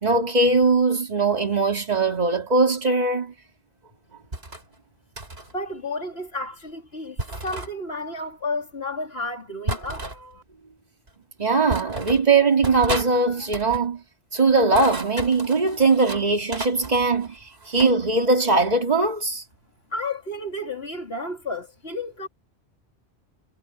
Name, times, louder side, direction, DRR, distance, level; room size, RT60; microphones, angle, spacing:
voice 1, 0.0-3.3 11.4-14.0 14.3-17.4 17.7-19.4, right 3 dB, 40° right, 2.6 m, -20 dB
sound 1, 4.3-4.6 5.2-5.5 7.2-7.7 9.7-10.2 11.1-11.2 11.7-12.3 12.6-13.1 13.4-13.9 14.5-16.2 16.5-18.0, right 2 dB, 70° right, 4.0 m, -32 dB
voice 2, 5.5-10.4 19.9-22.3, left 2 dB, 70° left, 3.7 m, -32 dB
omnidirectional pair, 1.1 m